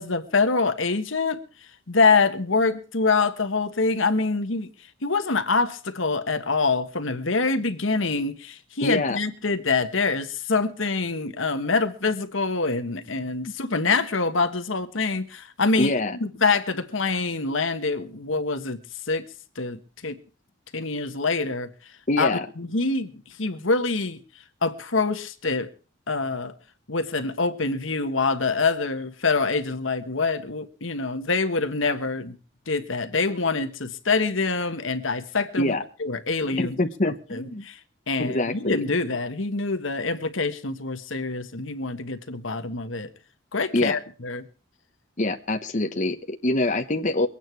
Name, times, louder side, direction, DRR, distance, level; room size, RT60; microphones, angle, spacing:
voice 1, 0.0-1.4 1.9-4.7 5.0-15.9 16.2-18.8 19.1-19.2 19.6-20.2 20.7-21.7 22.2-22.3 22.6-23.1 23.4-24.2 24.6-25.7 26.1-26.5 26.9-32.4 32.7-36.8 37.3-37.8 38.1-43.1 43.5-44.4, left 4 dB, 70° left, 1.5 m, -25 dB
voice 2, 8.8-9.2 15.8-16.2 22.1-22.5 35.6-35.8 36.8-37.6 38.2-38.8 43.7-43.9 45.2-47.3, left 2 dB, 40° left, 1.1 m, -24 dB
23.0 x 9.2 x 4.6 m
head